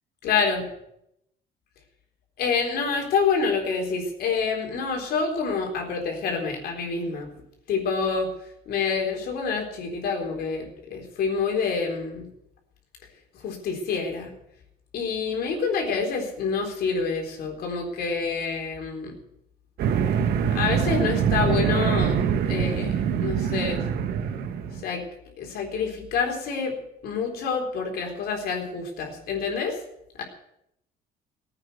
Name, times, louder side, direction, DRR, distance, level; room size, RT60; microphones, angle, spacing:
voice 1, 0.2-0.7 2.4-7.3 7.7-8.3 8.7-12.3 13.4-14.3 14.9-19.2 20.5-22.2 22.4-23.8 24.8-25.0 25.4-26.8 27.0-29.8, left 5 dB, 70° left, 2 dB, 3.9 m, -27 dB
sound 1, 19.8-24.8, right 7 dB, 70° right, 1.5 m, -24 dB
15.5 x 8.9 x 8.1 m, 0.78 s
cardioid pair, 110°, 17 cm